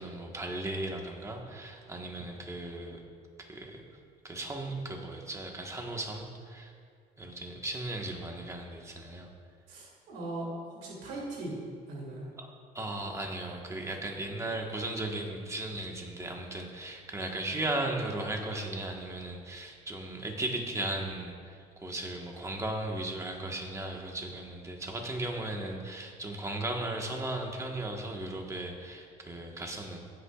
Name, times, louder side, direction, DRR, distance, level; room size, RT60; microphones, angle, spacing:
voice 1, 0.0-3.0 3.4-3.8 4.2-6.7 7.2-9.3 12.4-30.0, right 2 dB, 15° right, 1 dB, 1.4 m, -36 dB
voice 2, 9.7-11.6 11.9-12.3, right 2 dB, 80° right, -4 dB, 2.8 m, -39 dB
16.0 x 8.6 x 2.4 m, 2.1 s
cardioid pair, 110°, 17 cm